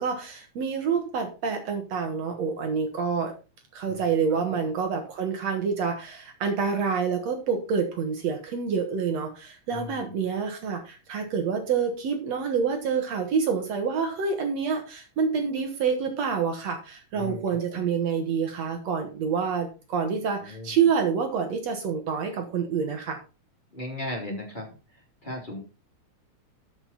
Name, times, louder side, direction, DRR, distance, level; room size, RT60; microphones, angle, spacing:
voice 1, 0.0-3.3 3.7-23.2, right 6 dB, 65° right, 5 dB, 2.5 m, -27 dB
voice 2, 3.9-4.2 4.5-4.6 9.7-10.2 17.1-17.4 17.7-17.9 20.4-20.9 23.7-24.7 25.2-25.6, left 1 dB, 15° left, 0 dB, 2.6 m, -37 dB
13.0 x 6.0 x 4.1 m, 0.32 s
omnidirectional pair, 3.5 m